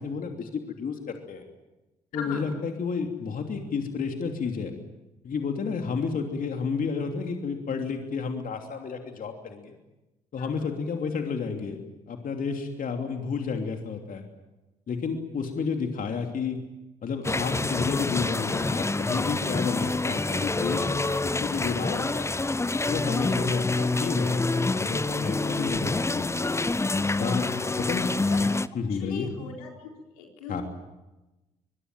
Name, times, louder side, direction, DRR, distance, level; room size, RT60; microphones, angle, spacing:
voice 1, 0.0-1.4 2.1-4.7 5.2-9.8 10.3-11.8 12.1-14.2 14.9-16.6 17.0-22.3 22.9-26.6 27.2-27.5 27.8-28.1 28.4-29.3 30.5-30.6, left 5 dB, 50° left, 4 dB, 3.0 m, -31 dB
voice 2, 2.1-2.4 5.7-5.8 27.3-27.7 28.3-28.5 28.9-29.7 30.2-30.6, left 5 dB, 80° left, 1 dB, 4.2 m, -39 dB
sound 1, 17.2-28.7, left 2 dB, 15° left, 0.9 m, -27 dB
25.0 x 21.5 x 9.3 m, 1.0 s
hypercardioid pair, 45°, 18 cm